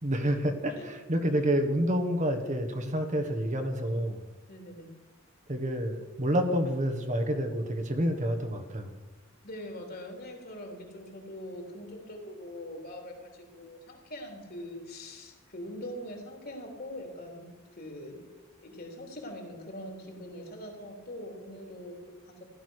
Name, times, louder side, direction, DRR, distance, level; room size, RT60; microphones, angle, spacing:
voice 1, 0.0-4.2 5.5-8.9, equal, 35° right, 6 dB, 1.5 m, -28 dB
voice 2, 4.5-4.9 9.2-18.2 18.6-22.4, left 1 dB, 50° left, 2 dB, 3.6 m, -43 dB
15.5 x 12.0 x 6.5 m, 1.2 s
head